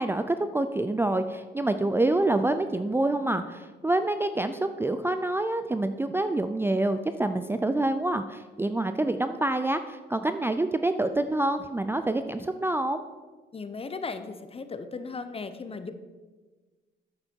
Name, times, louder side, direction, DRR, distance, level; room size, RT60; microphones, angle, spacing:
voice 1, 0.0-13.0, right 2 dB, 10° right, 9 dB, 0.4 m, -27 dB
voice 2, 13.5-15.9, left 4 dB, 30° left, 10 dB, 0.8 m, -36 dB
9.4 x 7.7 x 4.6 m, 1.3 s
cardioid pair, 90°, 20 cm